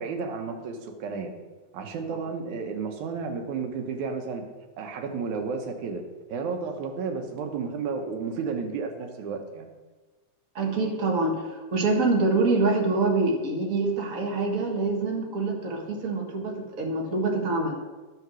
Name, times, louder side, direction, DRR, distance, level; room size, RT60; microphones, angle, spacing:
voice 1, 0.0-1.3 1.7-4.4 4.8-6.0 6.3-9.7, right 5 dB, 80° right, 4 dB, 2.4 m, -32 dB
voice 2, 10.5-17.7, right 3 dB, 35° right, 0 dB, 1.5 m, -25 dB
11.0 x 5.9 x 6.2 m, 1.3 s
omnidirectional pair, 3.4 m